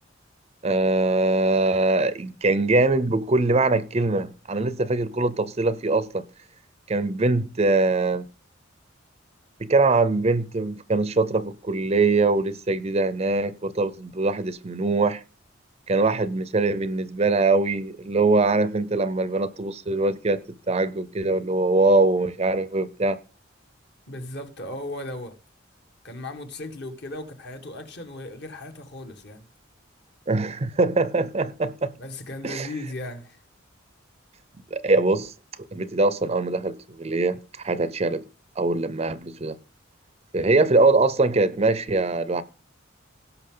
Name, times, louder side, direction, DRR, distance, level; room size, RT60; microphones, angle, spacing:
voice 1, 0.6-6.2 6.9-8.3 9.6-15.2 15.9-20.4 20.7-23.2 30.3-31.9 32.4-32.7 34.7-35.3 35.7-38.2 38.6-39.6 40.3-42.4, right 3 dB, 30° right, 0.5 m, -22 dB
voice 2, 24.1-25.4 26.0-29.5 31.9-33.4, left 1 dB, 55° left, 1.7 m, -36 dB
17.5 x 5.8 x 3.8 m
head